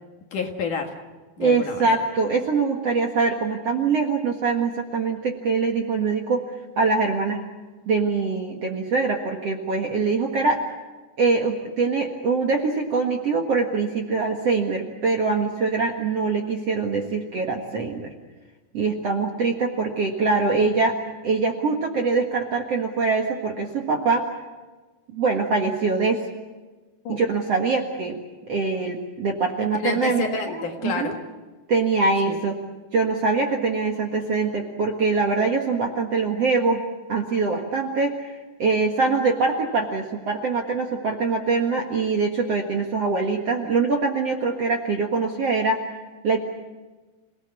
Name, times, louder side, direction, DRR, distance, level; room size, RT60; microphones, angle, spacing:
voice 1, 0.3-0.9 1.4-2.0 27.0-27.2 29.8-31.2 32.3-32.4, left 5 dB, 55° left, 3 dB, 2.8 m, -29 dB
voice 2, 1.4-6.5 6.8-7.4 7.9-10.6 11.2-18.1 18.7-20.9 21.2-24.2 25.1-26.3 27.1-28.2 28.5-30.3 30.8-31.1 31.7-32.6 32.9-45.8 46.2-46.5, right 4 dB, 50° right, 2 dB, 2.0 m, -23 dB
28.0 x 18.5 x 8.5 m, 1.3 s
omnidirectional pair, 4.9 m